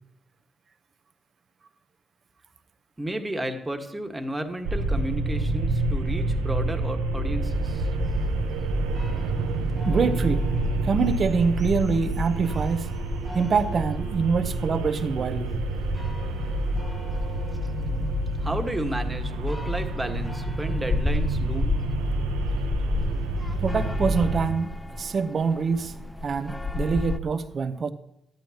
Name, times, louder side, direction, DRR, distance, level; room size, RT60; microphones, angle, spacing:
voice 1, 3.0-7.9 18.4-21.9, right 1 dB, 15° right, 1.6 m, -32 dB
sound 1, 4.6-24.5, right 2 dB, 85° right, 1.0 m, -28 dB
sound 2, 7.5-27.2, left 3 dB, 15° left, 0.7 m, -35 dB
voice 2, 9.8-10.5 10.9-12.9 13.3-15.6 23.6-25.9 26.2-27.9, right 5 dB, 50° right, 0.9 m, -25 dB
13.0 x 10.5 x 2.9 m
hypercardioid pair, 50°, 0 cm